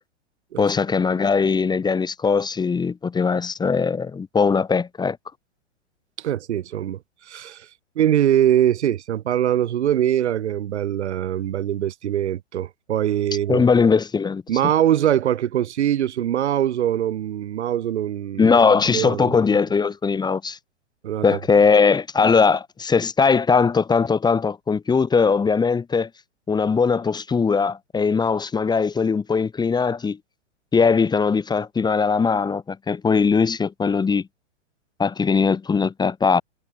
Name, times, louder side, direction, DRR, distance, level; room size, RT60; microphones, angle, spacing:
voice 1, 0.6-5.2 13.5-14.4 18.4-20.6 21.2-26.1 26.5-30.2 30.7-34.3 35.0-36.4, left 5 dB, 10° left, 2.6 m, -20 dB
voice 2, 6.2-7.0 7.3-7.7 8.0-13.6 14.5-18.5 18.9-19.3 21.0-21.3, right 11 dB, 60° right, 3.9 m, -22 dB
hypercardioid pair, 120°, 37 cm